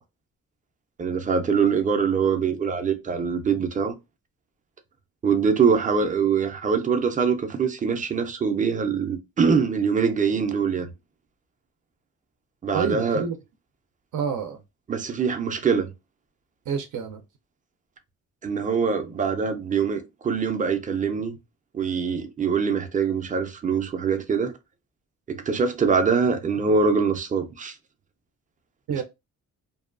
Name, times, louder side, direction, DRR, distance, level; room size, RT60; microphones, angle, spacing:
voice 1, 1.0-3.9 5.2-10.9 12.6-13.2 14.9-15.9 18.4-21.4 21.7-24.5 25.3-27.8 28.9-29.0, right 5 dB, 25° right, 0.4 m, -23 dB
voice 2, 12.7-13.4 14.1-14.6 16.7-17.2 28.9-29.0, right 6 dB, 80° right, 0.6 m, -28 dB
2.6 x 2.2 x 2.4 m
wide cardioid pair, 145°, 31 cm